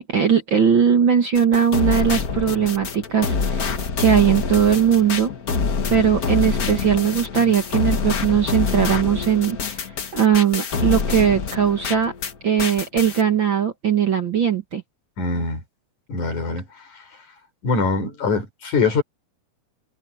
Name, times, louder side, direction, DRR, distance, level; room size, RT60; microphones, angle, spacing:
voice 1, 0.0-3.7 4.0-5.3 5.9-9.8 10.1-12.1 12.4-14.8, right 8 dB, 45° right, 2.1 m, -19 dB
sound 1, 1.3-12.3 12.6-13.2, left 5 dB, 45° left, 1.2 m, -26 dB
voice 2, 15.2-15.6 16.1-17.2 17.6-19.0, left 4 dB, 65° left, 6.6 m, -23 dB
omnidirectional pair, 3.7 m